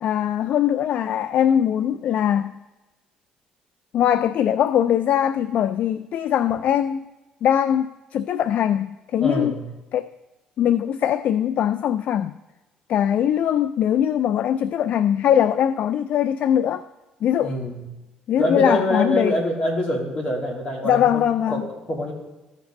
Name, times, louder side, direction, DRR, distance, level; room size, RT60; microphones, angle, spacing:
voice 1, 0.0-2.5 3.9-7.1 7.4-9.5 9.9-10.1 10.6-12.4 12.9-16.9 17.2-17.5 18.3-19.4 20.8-21.7, left 10 dB, 60° left, 0.3 m, -21 dB
voice 2, 9.2-9.6 17.4-17.8 18.4-22.1, left 1 dB, 45° left, 3.0 m, -25 dB
14.5 x 5.3 x 3.8 m
cardioid pair, 85°, 3 cm